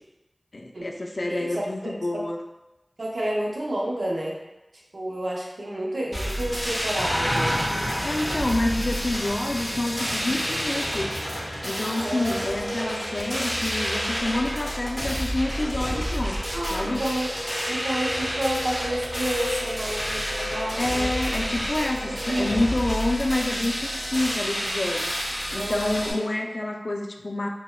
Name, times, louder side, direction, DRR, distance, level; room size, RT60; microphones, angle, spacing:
voice 1, 0.5-2.4 8.0-11.2 11.6-16.4 16.7-17.0 20.8-25.1 25.5-27.5, left 2 dB, 70° left, 2 dB, 0.3 m, -28 dB
voice 2, 1.3-2.2 3.0-4.4 4.9-7.6 12.0-13.0 16.5-17.3 17.7-21.1 22.1-22.5 25.6-26.2, right 1 dB, 85° right, -3 dB, 0.6 m, -30 dB
sound 1, 6.1-26.1, equal, ahead, 1.0 m, -30 dB
sound 2, 7.0-12.8 16.2-16.4, equal, 30° left, 0.7 m, -33 dB
sound 3, 7.6-24.2, left 1 dB, 60° right, 0.9 m, -39 dB
4.0 x 2.1 x 2.2 m, 1.0 s
wide cardioid pair, 40°, 0 cm